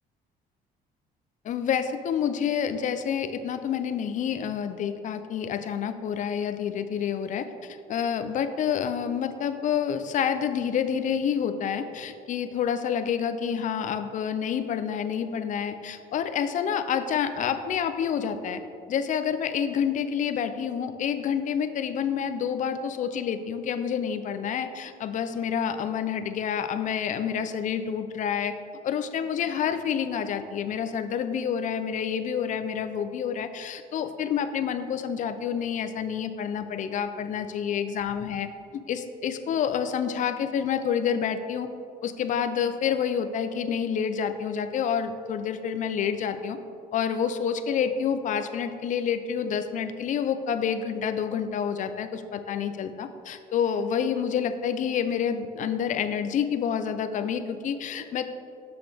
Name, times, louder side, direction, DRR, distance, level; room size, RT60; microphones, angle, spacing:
voice 1, 1.4-18.6 18.9-28.5 28.8-38.5 38.9-41.7 42.0-46.6 46.9-58.2, left 8 dB, 50° left, 9 dB, 0.5 m, -28 dB
6.6 x 5.9 x 3.4 m, 2.4 s
cardioid pair, 110°, 17 cm